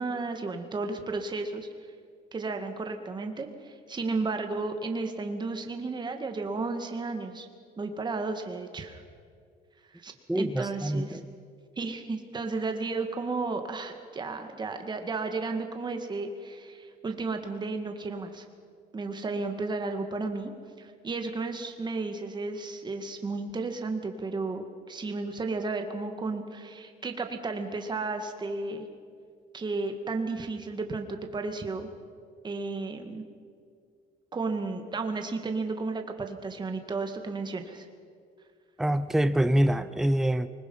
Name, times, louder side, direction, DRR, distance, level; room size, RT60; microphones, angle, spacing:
voice 1, 0.0-1.7 2.3-7.5 7.8-9.0 9.9-11.2 11.8-18.5 18.9-20.5 20.8-28.9 29.5-31.9 32.4-33.2 34.3-37.9, right 3 dB, 25° right, 5 dB, 2.0 m, -33 dB
voice 2, 10.3-11.3 38.8-40.5, right 1 dB, ahead, 12 dB, 0.6 m, -25 dB
24.5 x 20.5 x 5.6 m, 2.2 s
cardioid pair, 110°, 17 cm